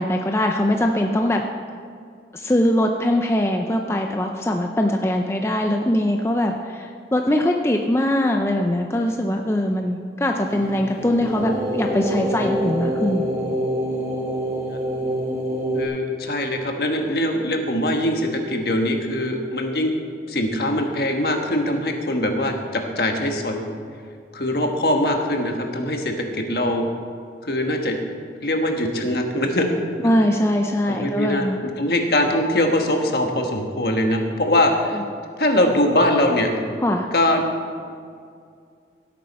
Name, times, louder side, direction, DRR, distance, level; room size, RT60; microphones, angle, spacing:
voice 1, 0.0-1.4 2.3-13.3 30.0-31.6 34.9-35.0 36.8-37.1, left 1 dB, 15° left, 3 dB, 0.5 m, -22 dB
sound 1, 10.5-15.9, equal, 15° right, 1.7 m, -26 dB
voice 2, 15.7-19.9 20.3-23.6 24.3-26.9 27.4-28.0 28.4-29.8 30.1-30.2 30.9-31.5 31.8-35.0 35.4-36.5 37.1-37.5, left 1 dB, 60° left, 3 dB, 1.3 m, -22 dB
16.5 x 8.6 x 4.2 m, 2.3 s
head